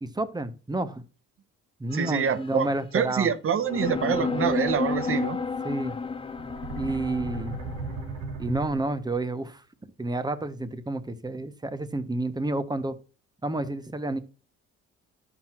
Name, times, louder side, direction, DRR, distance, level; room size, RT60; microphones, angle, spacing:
voice 1, 0.0-1.0 1.8-3.3 5.6-6.0 6.7-7.6 8.4-9.6 10.0-13.0 13.4-14.2, right 2 dB, 15° right, 1.0 m, -30 dB
sound 1, 1.9-3.1 3.6-8.3, left 4 dB, 20° left, 0.5 m, -32 dB
voice 2, 1.9-5.4, right 7 dB, 45° right, 0.9 m, -26 dB
sound 2, 6.4-9.2, right 3 dB, 70° right, 1.6 m, -36 dB
12.0 x 5.9 x 3.0 m
cardioid pair, 90°, 30 cm